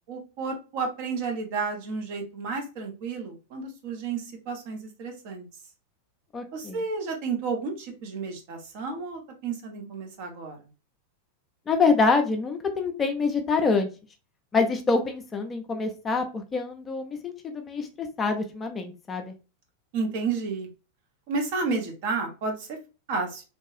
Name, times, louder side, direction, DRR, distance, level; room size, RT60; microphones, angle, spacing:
voice 1, 0.1-5.5 6.5-10.6 19.9-20.7 21.3-22.8 23.1-23.4, right 4 dB, 50° right, 3 dB, 0.7 m, -31 dB
voice 2, 6.3-6.8 11.7-13.9 14.5-19.3, left 4 dB, 20° left, 5 dB, 0.4 m, -26 dB
2.7 x 2.3 x 2.5 m, 0.31 s
figure-of-eight pair, 90°, 0 cm